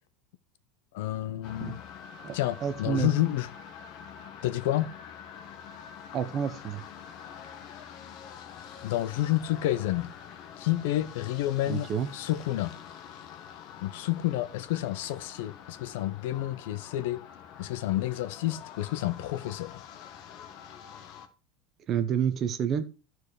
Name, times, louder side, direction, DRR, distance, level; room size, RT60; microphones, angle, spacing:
voice 1, 0.9-1.8 2.3-3.5 4.4-4.9 8.8-10.1 10.6-11.9 12.1-12.7 13.8-17.2 17.6-19.8, left 14 dB, 65° left, 0.7 m, -29 dB
sound 1, 1.4-21.3, left 8 dB, 40° left, 1.0 m, -46 dB
voice 2, 2.6-3.1 6.1-6.8 11.7-12.1 21.9-22.9, right 8 dB, 25° right, 0.8 m, -29 dB
12.5 x 4.7 x 4.8 m
supercardioid pair, 175°, 0 cm